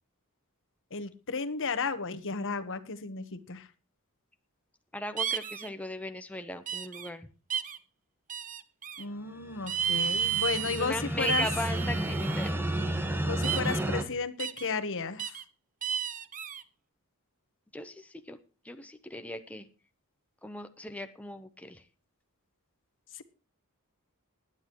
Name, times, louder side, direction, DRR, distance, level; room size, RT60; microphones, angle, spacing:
voice 1, 0.9-3.7 9.0-11.4 13.2-15.4 23.1-23.2, left 4 dB, 60° left, 12 dB, 1.3 m, -33 dB
voice 2, 4.9-7.3 10.7-12.6 17.7-18.4 18.6-19.7 20.4-21.8, left 1 dB, 5° left, 7 dB, 0.8 m, -38 dB
sound 1, 5.2-5.7 6.7-7.1 7.5-7.8 8.3-9.0 9.7-10.9 11.2-12.5 13.4-13.8 14.4-14.7 15.2-15.4 15.8-16.6, right 8 dB, 35° right, 0.9 m, -32 dB
sound 2, 9.5-14.0, right 1 dB, 10° right, 1.5 m, -32 dB
20.0 x 9.8 x 3.1 m, 0.34 s
head